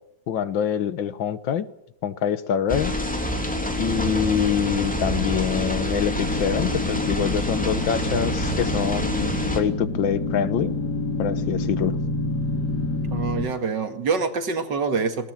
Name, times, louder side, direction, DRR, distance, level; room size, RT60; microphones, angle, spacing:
voice 1, 0.3-1.7 2.0-3.0 3.8-10.7 11.2-12.0, left 8 dB, 85° left, 14 dB, 1.9 m, -25 dB
sound 1, 2.7-9.6, left 1 dB, 5° left, 2.8 m, -26 dB
sound 2, 6.0-13.5, left 2 dB, 60° left, 3.4 m, -28 dB
voice 2, 13.1-15.3, right 5 dB, 65° right, 7 dB, 2.5 m, -25 dB
19.5 x 18.0 x 9.1 m, 0.78 s
omnidirectional pair, 2.0 m